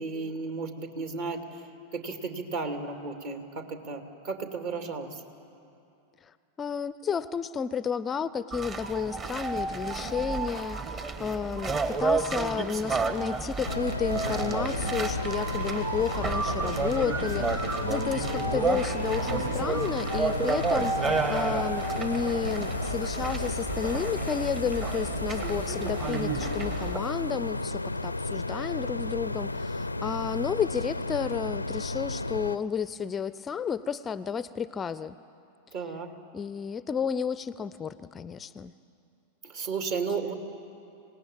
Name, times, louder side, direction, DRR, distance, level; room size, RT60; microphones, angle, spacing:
voice 1, 0.0-1.6 1.9-5.2 25.4-25.9 35.7-36.1 39.4-40.3, right 4 dB, 50° right, 5 dB, 2.6 m, -34 dB
voice 2, 6.6-35.2 36.3-38.7, left 6 dB, 20° left, 16 dB, 0.5 m, -32 dB
sound 1, 8.5-27.0, right 4 dB, 30° right, 1.5 m, -31 dB
sound 2, 13.7-32.6, left 2 dB, 85° left, 0.5 m, -33 dB
26.5 x 18.5 x 9.0 m, 2.7 s
figure-of-eight pair, 90°, 0 cm